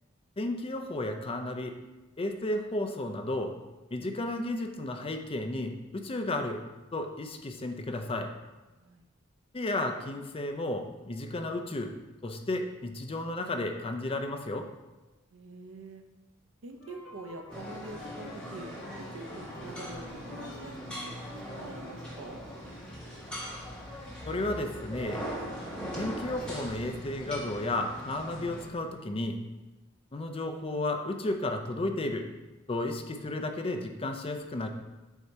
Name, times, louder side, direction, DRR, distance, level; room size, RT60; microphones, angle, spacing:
voice 1, 0.4-1.7 2.2-3.6 3.9-6.6 6.9-8.3 9.5-11.9 12.2-14.7 24.2-25.2 26.0-29.4 30.1-32.3 32.7-34.7, left 2 dB, 25° left, 5 dB, 0.5 m, -33 dB
voice 2, 15.3-16.0 16.6-18.7 19.0-21.1 21.4-22.4, right 2 dB, 70° right, 5 dB, 0.6 m, -45 dB
sound 1, 16.8-22.5, left 1 dB, 65° left, 1.4 m, -47 dB
sound 2, 17.5-28.7, equal, 5° left, 1.3 m, -41 dB
8.1 x 2.8 x 4.5 m, 1.1 s
head